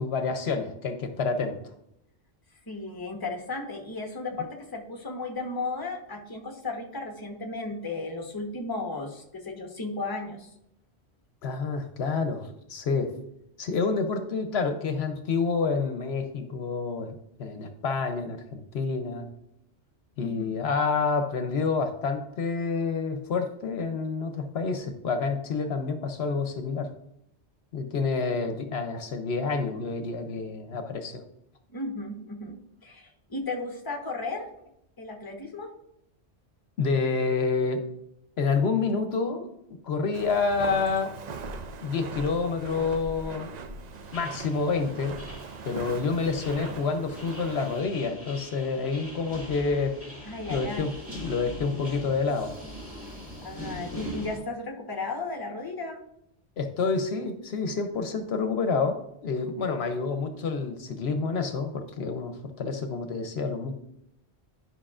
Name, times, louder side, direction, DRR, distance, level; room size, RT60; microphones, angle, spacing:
voice 1, 0.0-1.6 11.4-13.1 13.6-19.3 20.2-26.9 27.7-31.2 36.8-37.8 38.4-39.5 39.8-41.1 41.8-43.5 44.1-45.2 45.6-49.9 50.5-52.5 56.6-63.8, left 4 dB, 70° left, 7 dB, 0.9 m, -28 dB
voice 2, 2.7-10.5 20.2-20.4 31.7-34.5 35.0-35.7 50.2-50.9 53.4-56.0, left 3 dB, 20° left, 3 dB, 1.0 m, -35 dB
Walk footsteps, 40.1-47.8, right 4 dB, 50° right, 0.5 m, -40 dB
sound 1, 43.8-54.4, equal, 10° right, 1.9 m, -42 dB
11.0 x 5.4 x 2.4 m, 0.78 s
omnidirectional pair, 1.1 m